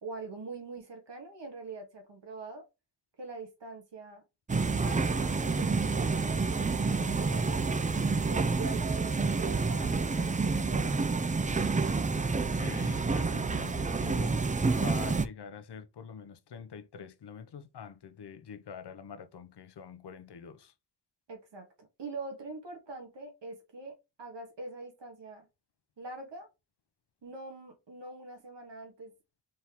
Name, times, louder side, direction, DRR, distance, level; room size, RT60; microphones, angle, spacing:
voice 1, 0.0-2.7 3.2-4.2 4.7-7.8 8.3-11.0 21.3-25.5 26.0-26.5 27.2-29.1, right 3 dB, 85° right, 1.6 m, -44 dB
sound 1, 4.5-15.3, right 4 dB, 20° right, 0.4 m, -29 dB
voice 2, 12.3-14.4 14.8-20.7, left 7 dB, 70° left, 0.7 m, -45 dB
4.3 x 3.5 x 2.9 m
wide cardioid pair, 65°, 42 cm